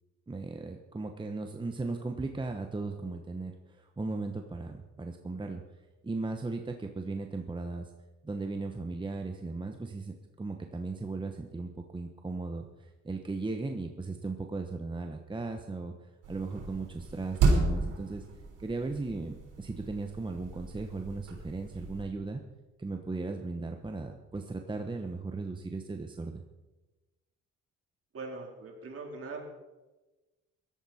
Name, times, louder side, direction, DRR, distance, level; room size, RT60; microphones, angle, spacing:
voice 1, 0.3-5.6 6.0-7.9 8.2-15.9 16.3-18.2 18.6-22.4 22.8-26.4, right 3 dB, 15° right, 4 dB, 1.1 m, -37 dB
sound 1, 16.2-22.0, right 3 dB, 90° right, 4.3 m, -32 dB
voice 2, 28.1-29.4, right 3 dB, 50° right, 0 dB, 3.9 m, -41 dB
16.5 x 12.5 x 4.3 m, 1.1 s
cardioid pair, 90°, 30 cm